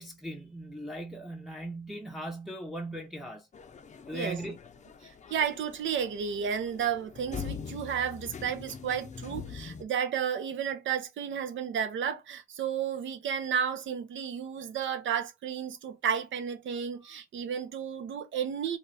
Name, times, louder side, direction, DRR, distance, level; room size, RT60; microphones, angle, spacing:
voice 1, 0.0-3.5 4.1-4.6, right 1 dB, ahead, 0.7 m, -39 dB
sound 1, 3.5-9.8, left 6 dB, 35° left, 0.5 m, -43 dB
voice 2, 5.0-18.8, right 8 dB, 75° right, 0.7 m, -32 dB
2.9 x 2.4 x 3.2 m
cardioid pair, 70°, 20 cm